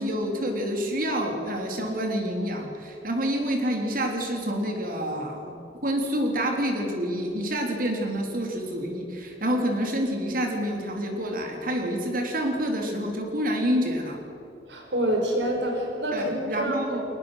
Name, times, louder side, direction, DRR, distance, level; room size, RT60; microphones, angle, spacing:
voice 1, 0.0-5.6 5.8-14.2 16.1-17.0, equal, 55° right, 3 dB, 3.7 m, -28 dB
voice 2, 14.7-17.0, right 1 dB, 80° right, 1 dB, 5.2 m, -27 dB
22.5 x 19.0 x 6.6 m, 2.8 s
head